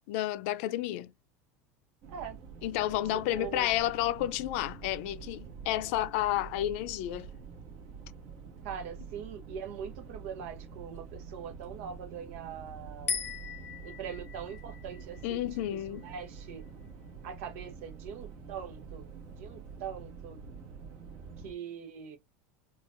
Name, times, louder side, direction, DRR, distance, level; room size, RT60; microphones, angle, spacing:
voice 1, 0.1-1.1 2.6-7.3 15.2-16.1, left 14 dB, 70° left, 0.5 m, -31 dB
sound 1, 2.0-21.5, right 5 dB, 60° right, 1.4 m, -47 dB
voice 2, 3.4-3.7 8.6-13.2 13.8-15.5 16.0-16.6 17.2-19.1 19.4-20.4 21.4-22.2, right 7 dB, 75° right, 1.0 m, -42 dB
sound 2, 13.1-16.5, left 8 dB, 30° left, 0.7 m, -39 dB
4.7 x 2.5 x 2.5 m
supercardioid pair, 130°, 7 cm